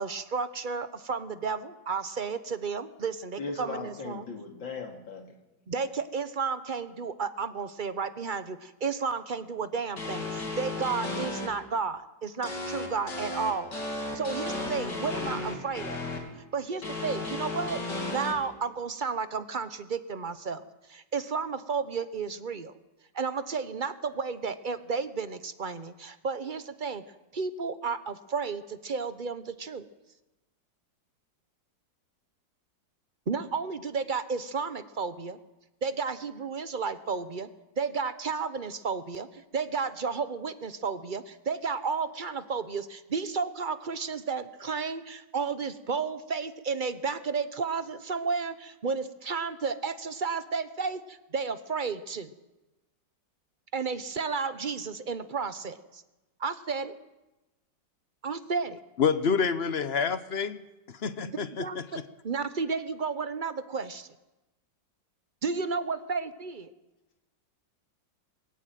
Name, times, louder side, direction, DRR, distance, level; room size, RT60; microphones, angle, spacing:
voice 1, 0.0-4.3 5.7-13.7 14.1-16.0 16.5-17.8 18.1-20.6 20.9-22.7 23.1-27.0 27.3-29.9 33.3-35.4 35.8-37.5 37.8-52.3 53.7-56.0 56.4-56.9 58.2-58.8 61.2-64.1 65.4-66.7, right 5 dB, 40° right, 12 dB, 0.7 m, -32 dB
voice 2, 3.4-5.3, left 4 dB, 80° left, 4 dB, 3.4 m, -38 dB
sound 1, 10.0-11.5 12.4-16.2 16.8-18.3, left 2 dB, 65° left, 3.9 m, -34 dB
voice 3, 59.0-60.6 60.9-62.0, left 6 dB, 45° left, 13 dB, 0.9 m, -28 dB
21.0 x 15.5 x 9.2 m, 1.0 s
omnidirectional pair, 2.0 m